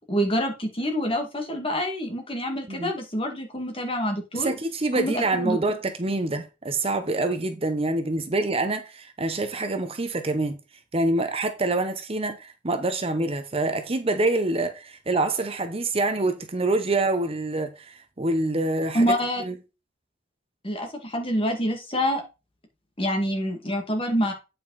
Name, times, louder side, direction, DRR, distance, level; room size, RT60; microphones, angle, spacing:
voice 1, 0.1-4.5 4.9-5.6 18.9-19.4 20.6-22.2 23.0-24.3, equal, 30° left, 2.1 m, -26 dB
voice 2, 4.3-10.6 10.9-19.1 19.4-19.5, right 2 dB, 30° right, 0.8 m, -26 dB
8.8 x 5.5 x 4.1 m
head